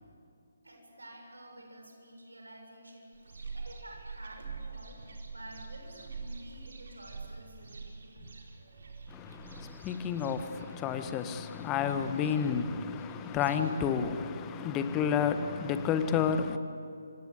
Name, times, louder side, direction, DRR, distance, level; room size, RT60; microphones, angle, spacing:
voice 1, 0.6-3.1 3.5-5.0 5.3-8.2 14.4-14.5, right 1 dB, 70° right, 7.1 m, -50 dB
sound 1, 3.1-13.6, right 4 dB, 55° right, 4.5 m, -46 dB
voice 2, 9.1-16.6, left 7 dB, 15° left, 1.3 m, -31 dB
26.5 x 26.0 x 8.3 m
figure-of-eight pair, 140°, 0 cm